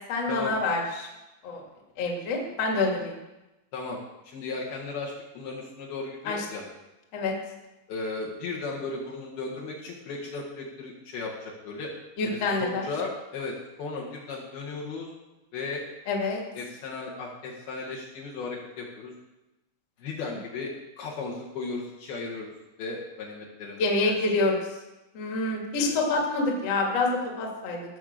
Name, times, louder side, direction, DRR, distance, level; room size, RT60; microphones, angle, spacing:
voice 1, 0.1-1.1 1.4-1.6 2.0-3.2 6.3-6.4 7.1-7.3 12.2-12.9 16.1-16.4 23.8-24.6 25.1-27.8, left 3 dB, 40° left, 0 dB, 2.7 m, -27 dB
voice 2, 4.2-6.6 7.9-11.9 12.2-15.1 15.5-15.8 16.5-19.1 20.0-22.5 22.8-24.1 25.8-25.9, left 3 dB, 60° left, -4 dB, 3.5 m, -36 dB
17.0 x 7.1 x 6.8 m, 1.0 s
omnidirectional pair, 5.4 m